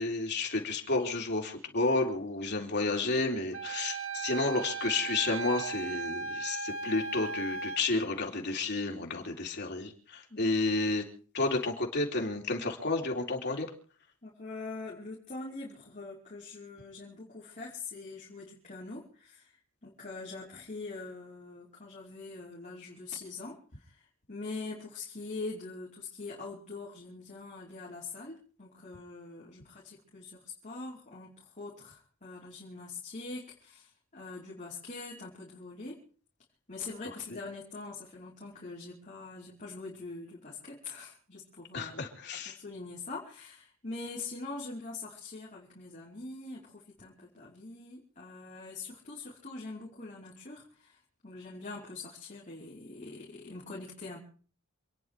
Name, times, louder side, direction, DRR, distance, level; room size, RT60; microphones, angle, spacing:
voice 1, 0.0-9.9 10.4-11.0 11.3-13.7 41.7-42.5, left 3 dB, 55° left, 1 dB, 3.6 m, -31 dB
Wind instrument woodwind instrument, 3.5-7.8, right 4 dB, 85° right, 1.3 m, -37 dB
voice 2, 14.2-19.6 19.8-24.0 24.3-36.0 36.7-42.1 42.4-51.0 51.2-54.2, left 3 dB, 40° left, -6 dB, 5.0 m, -43 dB
28.0 x 10.5 x 4.8 m, 0.44 s
head